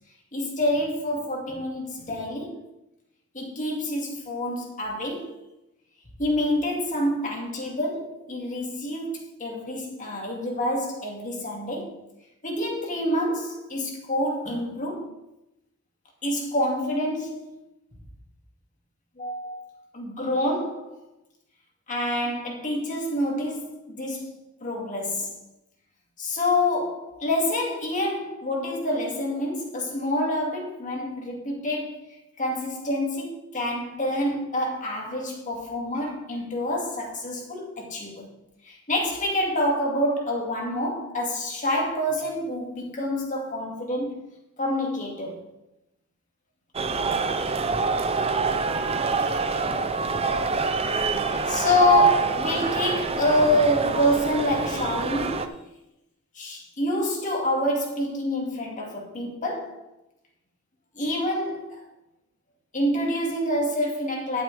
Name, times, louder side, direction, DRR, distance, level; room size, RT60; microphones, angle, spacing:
voice 1, 0.3-2.6 3.3-5.3 6.2-12.0 12.4-15.1 16.2-17.5 19.2-19.6 19.9-21.0 21.9-24.3 24.6-25.4 26.2-32.0 32.4-38.3 38.6-44.2 44.6-45.4 51.3-55.6 56.4-59.8 61.0-61.8 62.7-64.4, left 1 dB, 35° left, 2.4 m, -27 dB
sound 1, 46.7-55.5, right 4 dB, 25° right, 0.6 m, -25 dB
11.0 x 9.3 x 3.5 m
head